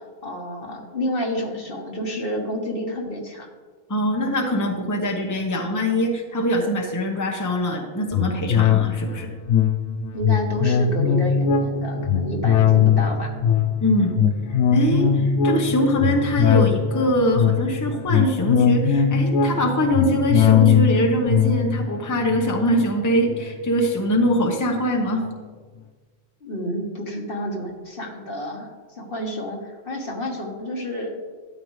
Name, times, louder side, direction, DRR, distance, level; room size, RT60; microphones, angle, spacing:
voice 1, 0.0-3.5 10.1-13.3 26.4-31.2, equal, 50° left, 1 dB, 1.6 m, -30 dB
voice 2, 3.9-9.3 13.8-14.1 14.5-25.3, equal, 15° left, 2 dB, 1.0 m, -23 dB
sound 1, 8.1-23.9 24.3-24.4, left 7 dB, 80° left, 0.9 m, -21 dB
13.0 x 9.5 x 3.2 m, 1.4 s
omnidirectional pair, 1.2 m